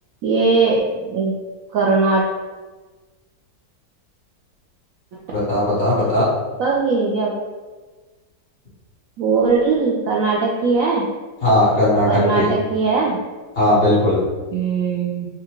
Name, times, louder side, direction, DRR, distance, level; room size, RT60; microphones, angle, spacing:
voice 1, 0.2-1.3 1.7-2.2 6.5-7.3 9.2-11.0 12.0-13.2 14.5-15.3, right 4 dB, 85° right, -3 dB, 0.7 m, -19 dB
voice 2, 5.3-6.3 11.4-12.1 12.3-12.5 13.5-14.2, left 1 dB, 35° left, -10 dB, 1.6 m, -17 dB
4.8 x 2.3 x 2.9 m, 1.3 s
omnidirectional pair, 2.0 m